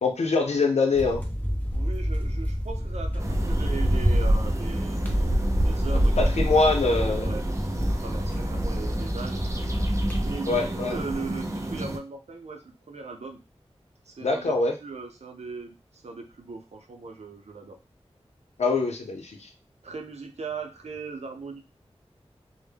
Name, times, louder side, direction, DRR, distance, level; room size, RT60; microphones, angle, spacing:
voice 1, 0.0-1.2 6.2-7.3 10.5-11.0 14.2-14.7 18.6-19.5, left 3 dB, 90° left, 3 dB, 0.6 m, -24 dB
sound 1, 0.9-10.3, equal, 15° left, 0.7 m, -30 dB
voice 2, 1.7-6.1 6.5-6.7 7.0-7.4 7.7-9.4 10.2-13.4 14.1-14.5 14.8-17.8 19.8-21.6, right 4 dB, 80° right, 4 dB, 0.6 m, -39 dB
sound 2, 3.2-12.0, right 1 dB, 25° right, 0.5 m, -27 dB
2.2 x 2.1 x 3.3 m, 0.28 s
wide cardioid pair, 50°, 11 cm